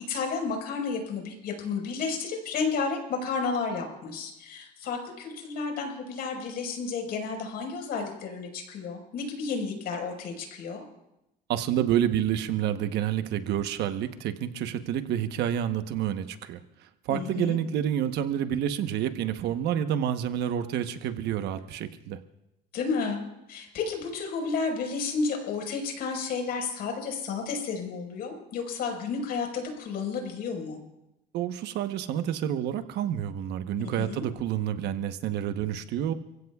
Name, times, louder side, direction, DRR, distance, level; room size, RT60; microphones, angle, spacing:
voice 1, 0.1-10.8 17.1-17.6 22.7-23.2 23.5-30.8 34.0-34.2, left 4 dB, 70° left, 2 dB, 5.0 m, -32 dB
voice 2, 11.5-16.6 17.1-22.2 31.3-36.1, right 10 dB, 80° right, 9 dB, 1.1 m, -28 dB
29.0 x 16.0 x 2.4 m, 0.89 s
cardioid pair, 110°, 17 cm